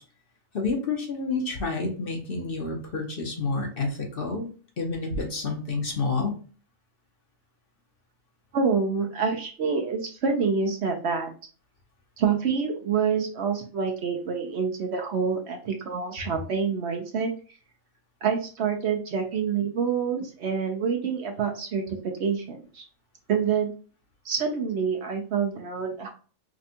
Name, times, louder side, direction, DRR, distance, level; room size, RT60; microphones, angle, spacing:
voice 1, 0.5-4.5 4.8-6.4, left 3 dB, 50° left, 1 dB, 1.0 m, -29 dB
voice 2, 8.5-11.3 12.2-17.3 18.2-22.9 23.3-23.7 24.2-26.1, right 6 dB, 60° right, 3 dB, 0.9 m, -27 dB
5.0 x 2.3 x 2.7 m, 0.39 s
omnidirectional pair, 1.4 m